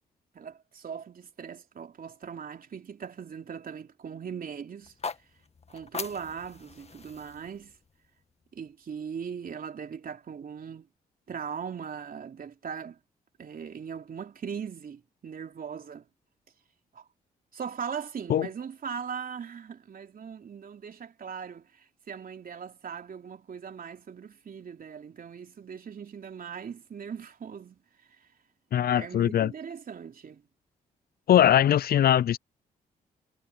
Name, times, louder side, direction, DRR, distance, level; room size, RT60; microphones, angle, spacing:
voice 1, 0.3-4.9 5.7-7.7 8.5-10.9 11.3-13.0 13.4-16.1 16.9-17.0 17.5-27.8 28.9-30.4, right 7 dB, 55° right, 3.3 m, -39 dB
sound 1, 4.8-9.0, left 4 dB, 35° left, 1.8 m, -42 dB
voice 2, 28.7-29.5 31.3-32.4, left 11 dB, 60° left, 0.6 m, -21 dB
supercardioid pair, 50°, 18 cm